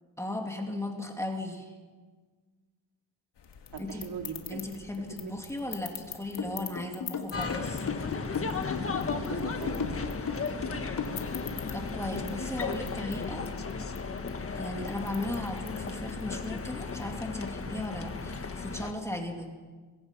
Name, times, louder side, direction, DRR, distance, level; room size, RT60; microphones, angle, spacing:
voice 1, 0.2-1.7 3.8-4.0 4.5-7.8 11.7-13.5 14.5-19.5, left 1 dB, 5° left, 2 dB, 2.4 m, -36 dB
sound 1, 3.3-19.0, left 9 dB, 75° left, 2.2 m, -48 dB
voice 2, 3.7-4.6 5.1-5.3 8.7-10.1, right 6 dB, 65° right, 3 dB, 2.7 m, -41 dB
sound 2, 6.4-11.6, left 6 dB, 50° left, 2.5 m, -35 dB
sound 3, 7.3-18.9, left 4 dB, 30° left, 1.5 m, -35 dB
25.5 x 22.5 x 5.5 m, 1.4 s
wide cardioid pair, 160°, 42 cm